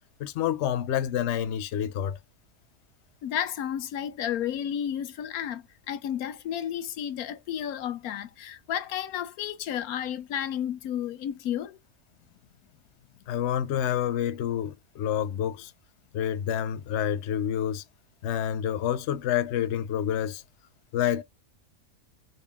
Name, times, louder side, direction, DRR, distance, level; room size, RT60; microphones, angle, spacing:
voice 1, 0.2-2.2 13.3-15.7 16.1-17.8 18.2-20.4 20.9-21.2, left 10 dB, 65° left, 0.8 m, -28 dB
voice 2, 3.2-11.8, left 10 dB, 80° left, 1.1 m, -32 dB
4.0 x 2.3 x 3.4 m
omnidirectional pair, 1.5 m